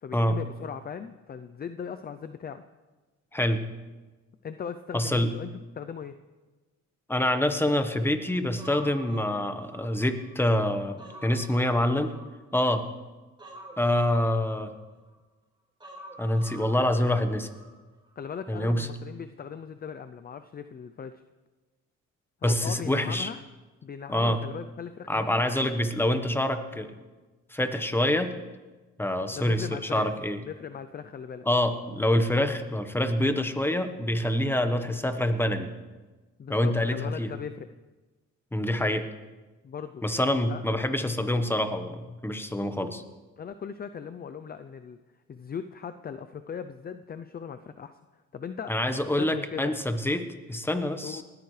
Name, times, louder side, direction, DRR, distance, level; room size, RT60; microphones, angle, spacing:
voice 1, 0.0-2.6 4.4-6.2 18.2-21.2 22.4-23.4 23.8-25.5 29.3-30.1 30.4-31.4 36.4-37.7 39.6-40.0 40.5-40.6 43.4-45.0 45.3-47.9 48.3-48.7 49.2-49.8 51.0-51.2, left 7 dB, 30° left, 10 dB, 0.5 m, -38 dB
voice 2, 3.3-3.6 4.9-5.3 7.1-12.1 12.5-12.8 13.8-14.7 16.2-17.5 18.5-18.9 22.4-23.3 24.1-24.4 25.1-26.9 27.5-28.3 29.0-30.4 31.5-35.7 36.5-37.3 38.5-39.1 40.0-43.0 48.7-51.2, left 1 dB, 5° left, 8 dB, 1.2 m, -26 dB
Human voice, 8.6-10.4 10.7-12.7 13.4-15.2 15.8-17.7 18.0-18.1, right 1 dB, 15° right, 4.5 m, -47 dB
19.5 x 14.0 x 3.3 m, 1.2 s
cardioid pair, 90°, 30 cm